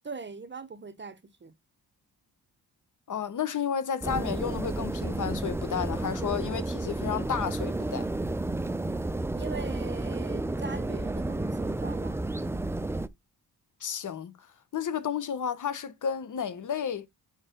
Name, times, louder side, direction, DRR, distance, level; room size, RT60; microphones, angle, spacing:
voice 1, 0.0-1.5 9.4-12.2, right 4 dB, 30° right, 0.9 m, -41 dB
voice 2, 3.1-8.1 13.8-14.3 14.7-17.1, left 7 dB, 50° left, 0.9 m, -32 dB
sound 1, 4.0-13.1, right 2 dB, 5° right, 0.3 m, -31 dB
5.0 x 4.4 x 5.1 m
cardioid pair, 100°, 39 cm